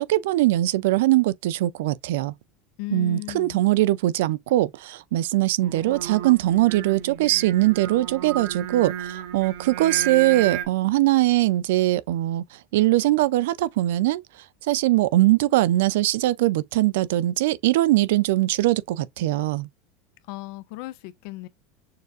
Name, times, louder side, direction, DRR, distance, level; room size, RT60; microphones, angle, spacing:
voice 1, 0.0-2.3 2.9-12.4 12.7-14.2 14.7-19.7, right 16 dB, 75° right, 0.3 m, -21 dB
voice 2, 2.8-3.6 20.3-21.5, left 20 dB, 50° left, 0.5 m, -36 dB
Singing, 5.6-10.7, right 10 dB, 55° right, 0.7 m, -33 dB
6.5 x 2.4 x 2.4 m
supercardioid pair, 180°, 0 cm